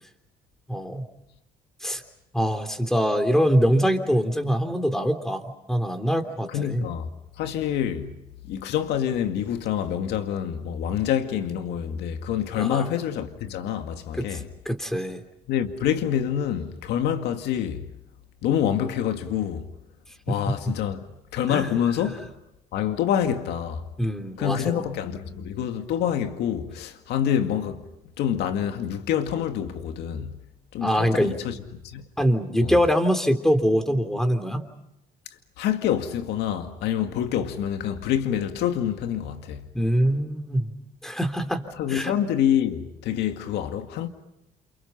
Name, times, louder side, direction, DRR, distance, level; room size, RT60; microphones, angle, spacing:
voice 1, 0.7-1.0 1.8-2.0 2.3-5.4 5.7-6.8 12.5-12.9 14.1-14.3 14.6-15.2 20.3-20.4 21.5-21.7 24.0-24.8 30.8-31.3 32.2-34.7 39.7-40.7 41.0-42.1, equal, 5° left, 3.5 m, -23 dB
voice 2, 6.5-7.1 7.4-8.2 8.5-14.5 15.5-17.9 18.4-19.7 20.3-21.0 21.3-22.3 22.7-23.8 24.4-27.8 28.2-30.4 30.7-31.6 31.8-32.0 32.6-32.7 35.6-39.7 41.8-44.1, left 9 dB, 80° left, 2.1 m, -26 dB
29.5 x 28.5 x 5.7 m
cardioid pair, 110°, 17 cm